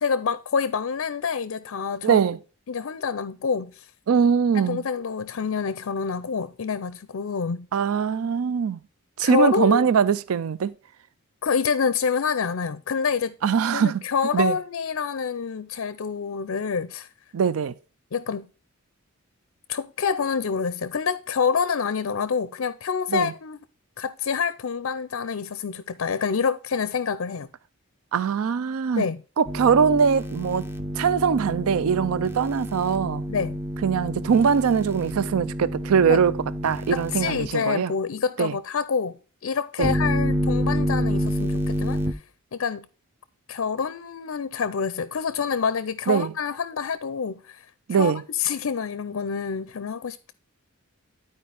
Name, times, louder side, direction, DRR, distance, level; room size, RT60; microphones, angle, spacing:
voice 1, 0.0-2.2 2.7-3.9 4.5-7.7 9.2-9.9 11.4-13.4 13.7-17.1 18.1-18.5 19.7-23.6 24.0-27.5 29.0-29.2 33.3-33.6 36.1-36.2 36.9-42.2 42.5-42.9 43.5-50.3, left 6 dB, 65° left, 0.4 m, -27 dB
voice 2, 2.0-2.4 4.1-4.8 7.7-8.8 9.2-10.7 13.4-14.0 14.3-14.5 17.3-17.7 23.1-23.3 28.1-29.0 29.4-30.6 31.0-33.2 33.8-36.3 36.6-37.9 38.4-38.5 39.8-39.9 46.1-46.3 47.9-48.2, right 6 dB, 75° right, 0.4 m, -22 dB
sound 1, 29.5-37.5 39.8-42.1, equal, 10° right, 0.6 m, -28 dB
12.0 x 4.6 x 3.4 m
head